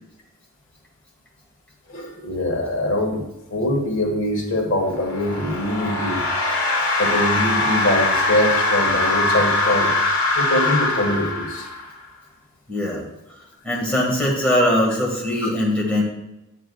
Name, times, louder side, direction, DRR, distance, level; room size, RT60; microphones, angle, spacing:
voice 1, 1.9-3.2 3.5-6.2 6.7-9.9 10.4-11.7, left 1 dB, 60° left, 1 dB, 1.5 m, -23 dB
sound 1, 4.9-12.0, left 2 dB, 80° left, 1.7 m, -22 dB
voice 2, 12.7-13.0 13.6-16.0, left 1 dB, 5° left, -3 dB, 1.6 m, -21 dB
8.9 x 8.3 x 2.3 m, 0.92 s
head